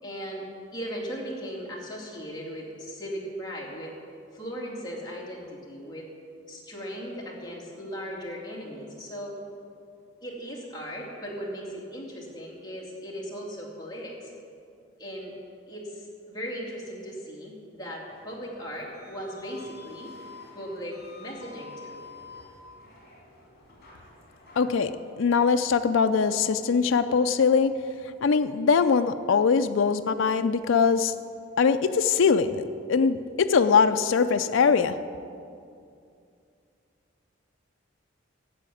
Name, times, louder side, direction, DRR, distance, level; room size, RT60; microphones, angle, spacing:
voice 1, 0.0-3.9 4.3-6.1 6.5-9.4 10.2-14.3 15.0-15.3 15.7-20.1 20.5-22.0, equal, 20° left, -4 dB, 2.6 m, -37 dB
sound 1, 18.1-24.7, left 4 dB, 55° left, 3.2 m, -49 dB
voice 2, 24.6-27.7 28.2-31.1 31.6-32.6 32.9-35.0, left 5 dB, 70° left, 9 dB, 0.4 m, -22 dB
12.0 x 7.6 x 8.6 m, 2.4 s
head